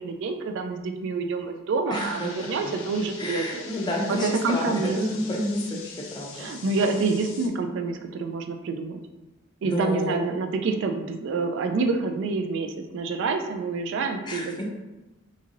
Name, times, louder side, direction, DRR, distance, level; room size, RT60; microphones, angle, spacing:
voice 1, 0.0-3.6 4.2-5.0 6.4-9.0 9.6-14.6, right 3 dB, 65° right, 5 dB, 0.3 m, -27 dB
sound 1, 1.9-7.5, left 5 dB, 80° left, 0.5 m, -43 dB
voice 2, 1.9-2.8 3.2-6.5 9.6-10.2 14.2-14.6, left 1 dB, 20° left, -1 dB, 0.5 m, -30 dB
2.9 x 2.6 x 2.5 m, 1.0 s
head